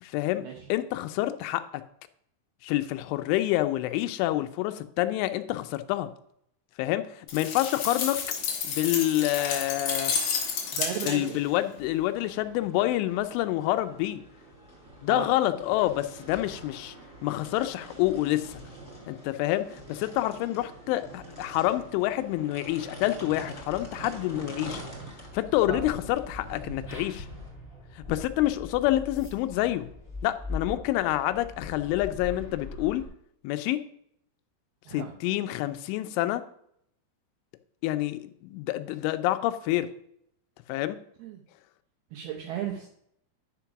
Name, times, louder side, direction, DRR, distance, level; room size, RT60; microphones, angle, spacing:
voice 1, 0.0-0.4 0.7-1.6 2.6-6.1 6.8-8.2 8.6-10.1 11.0-14.2 15.0-17.0 17.2-18.6 19.1-24.8 25.3-27.3 28.0-29.9 30.2-33.0 33.4-33.8 34.9-36.4 37.8-39.9 40.7-41.0, left 15 dB, 85° left, 11 dB, 3.0 m, -27 dB
sound 1, 7.3-11.5, left 6 dB, 65° left, 1.9 m, -31 dB
voice 2, 10.7-11.4 15.1-15.3 25.7-25.8 34.9-35.1 41.2-41.4 42.1-42.9, right 10 dB, 80° right, 2 dB, 2.2 m, -35 dB
sound 2, 11.8-27.5, right 1 dB, 5° right, 3.0 m, -45 dB
sound 3, 25.8-33.1, left 2 dB, 15° left, 2.9 m, -41 dB
10.0 x 5.2 x 5.8 m, 0.72 s
omnidirectional pair, 5.5 m